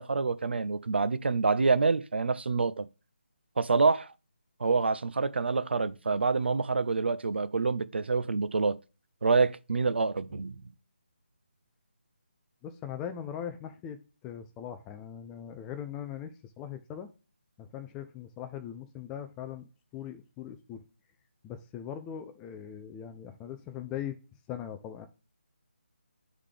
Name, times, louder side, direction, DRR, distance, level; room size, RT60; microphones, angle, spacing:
voice 1, 0.0-2.9 3.6-4.1 4.6-8.8 9.2-10.6, right 4 dB, 70° right, 0.5 m, -27 dB
voice 2, 12.6-14.0 14.2-17.1 17.6-19.7 19.9-20.8 21.4-24.2 24.5-25.1, left 9 dB, 10° left, 0.3 m, -40 dB
10.0 x 3.7 x 3.3 m
figure-of-eight pair, 165°, 6 cm